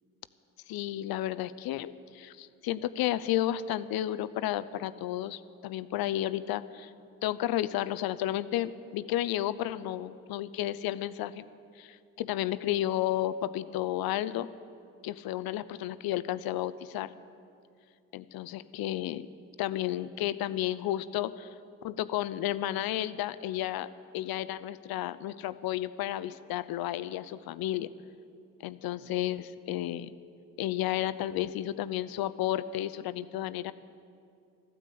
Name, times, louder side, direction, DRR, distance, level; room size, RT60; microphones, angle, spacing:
voice 1, 0.7-6.9 7.2-11.4 11.8-14.5 15.0-17.1 18.1-19.3 19.6-21.5 21.8-23.9 24.1-27.9 28.6-30.1 30.6-33.7, left 13 dB, 65° left, 15 dB, 0.7 m, -32 dB
14.5 x 9.3 x 8.4 m, 2.4 s
hypercardioid pair, 45°, 40 cm